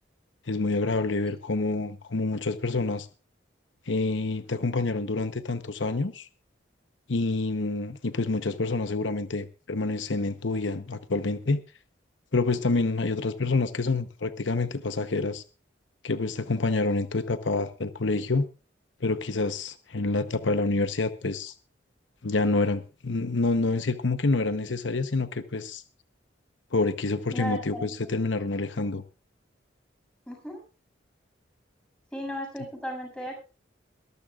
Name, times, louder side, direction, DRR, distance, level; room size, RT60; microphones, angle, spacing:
voice 1, 0.5-3.1 3.9-6.3 7.1-11.6 12.3-15.4 16.0-18.5 19.0-21.5 22.2-25.8 26.7-29.0, left 3 dB, 80° left, 1.0 m, -27 dB
voice 2, 27.3-28.1 30.3-30.6 32.1-33.4, equal, 5° left, 7.4 m, -35 dB
22.5 x 14.0 x 2.5 m
head